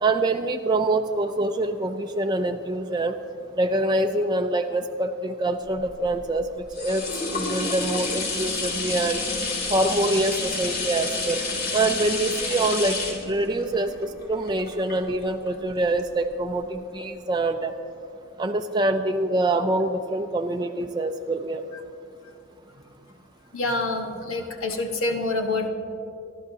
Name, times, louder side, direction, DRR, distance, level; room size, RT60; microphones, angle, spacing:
voice 1, 0.0-3.2 3.6-7.0 7.3-9.2 9.7-11.4 11.7-17.8 18.4-21.6, right 2 dB, 20° right, 5 dB, 0.4 m, -25 dB
sound 1, 5.7-15.5 16.0-16.1, left 3 dB, 45° left, 2.6 m, -30 dB
voice 2, 23.5-25.7, left 2 dB, 90° left, 3 dB, 1.3 m, -27 dB
27.0 x 12.0 x 2.8 m, 2.6 s
head